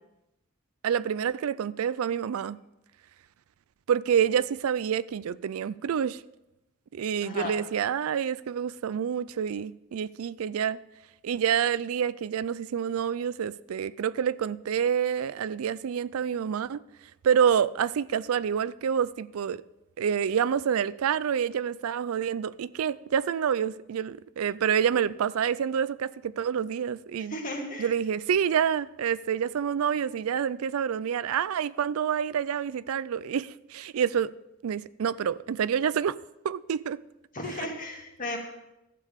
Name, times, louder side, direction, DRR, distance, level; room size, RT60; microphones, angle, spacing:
voice 1, 0.8-2.6 3.9-6.2 6.9-10.8 11.2-16.8 17.2-19.6 20.0-27.4 27.8-34.3 34.6-36.2 36.4-37.0, right 8 dB, 90° right, 0.4 m, -27 dB
voice 2, 7.2-7.6 27.3-27.9 37.3-38.4, left 1 dB, 40° left, 2.0 m, -34 dB
12.5 x 8.5 x 5.1 m
head